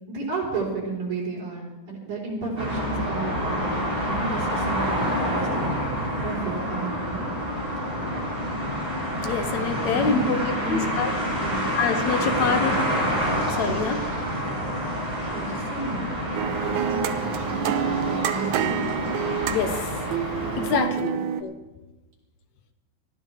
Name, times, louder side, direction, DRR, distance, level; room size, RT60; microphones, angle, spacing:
voice 1, 0.1-5.8 6.2-7.2 9.9-10.9 11.4-11.7 12.1-12.8 15.3-18.8 21.1-21.3, right 3 dB, 70° right, -3 dB, 5.1 m, -32 dB
sound 1, 2.6-20.8, equal, 15° right, 6.5 m, -28 dB
voice 2, 9.2-10.4 10.7-11.1 11.7-12.8 13.6-14.0 19.5-19.8 20.6-21.2 21.4-21.5, left 5 dB, 75° left, 7 dB, 2.3 m, -25 dB
sound 2, 16.3-21.4, right 9 dB, 90° right, 2.2 m, -28 dB
20.5 x 14.0 x 3.3 m, 1.1 s
omnidirectional pair, 3.4 m